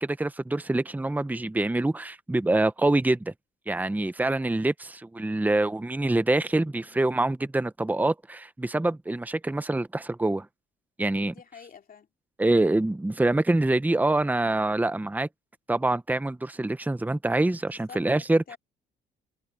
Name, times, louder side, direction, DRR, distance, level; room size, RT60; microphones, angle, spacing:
voice 1, 0.0-3.3 3.7-10.5 11.0-11.3 12.4-15.3 15.7-18.4, right 2 dB, 10° right, 0.9 m, -25 dB
voice 2, 11.2-12.1 17.7-18.6, left 6 dB, 45° left, 2.8 m, -48 dB
cardioid pair, 90°, 20 cm